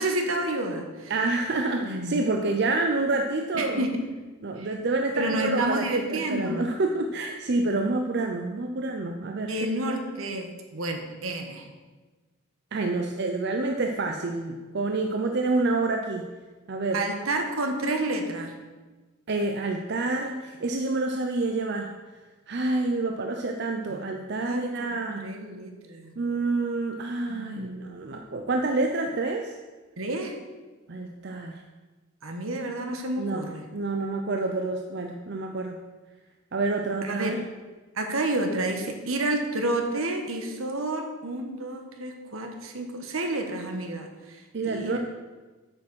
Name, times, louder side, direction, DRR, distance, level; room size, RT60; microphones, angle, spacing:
voice 1, 0.0-1.1 1.8-2.2 3.5-3.9 4.6-4.7 5.1-6.7 9.5-11.6 16.9-18.5 23.9-24.0 24.4-24.6 25.2-26.1 27.3-27.8 30.0-30.3 32.2-33.6 37.0-37.4 37.9-44.4 44.7-45.0, right 2 dB, 75° right, 4 dB, 1.3 m, -30 dB
voice 2, 1.1-3.8 4.4-9.5 9.9-10.0 12.7-16.2 16.7-17.0 19.3-21.9 22.5-25.3 26.2-29.5 30.9-31.6 33.2-33.5 33.7-35.8 36.5-37.4 44.5-45.0, right 2 dB, 50° right, 4 dB, 0.6 m, -28 dB
8.7 x 6.1 x 6.2 m, 1.3 s
head